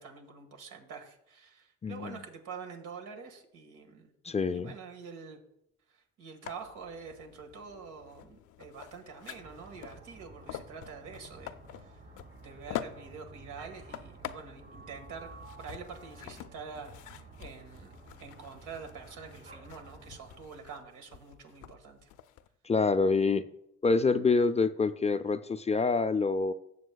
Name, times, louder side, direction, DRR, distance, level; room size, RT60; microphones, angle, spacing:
voice 1, 0.0-4.1 4.5-5.4 5.9-11.9 12.4-15.3 15.6-17.9 18.2-22.1, right 5 dB, 80° right, 4 dB, 1.7 m, -46 dB
voice 2, 1.8-2.2 4.2-4.7 22.6-23.5 23.8-26.5, left 4 dB, 20° left, 11 dB, 0.4 m, -26 dB
sound 1, 6.4-22.5, left 11 dB, 85° left, 0.5 m, -47 dB
sound 2, 9.3-20.4, right 3 dB, 45° right, 3.1 m, -52 dB
17.5 x 7.0 x 2.3 m, 0.80 s
cardioid pair, 90°, 30 cm